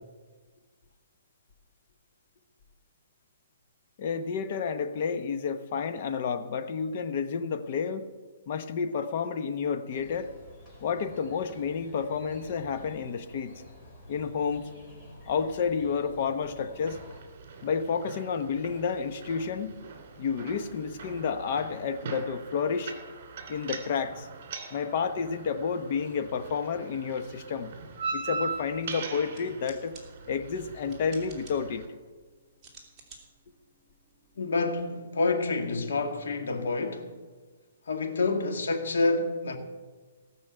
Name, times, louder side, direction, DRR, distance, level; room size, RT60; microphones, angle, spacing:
voice 1, 4.0-8.1 8.5-10.3 10.8-13.5 14.1-14.7 15.3-17.0 17.6-19.8 20.2-22.9 23.5-24.3 24.7-27.7 28.1-30.0 30.3-31.9, left 6 dB, 45° left, 1.0 m, -30 dB
sound 1, 9.9-17.2, left 1 dB, 25° left, 4.3 m, -50 dB
sound 2, 16.9-31.9, right 4 dB, 45° right, 2.9 m, -41 dB
sound 3, 28.7-34.8, right 4 dB, 15° right, 2.8 m, -56 dB
voice 2, 34.4-37.1 37.9-39.6, left 3 dB, 80° left, 2.1 m, -28 dB
18.5 x 6.2 x 8.0 m
hypercardioid pair, 160°, 0 cm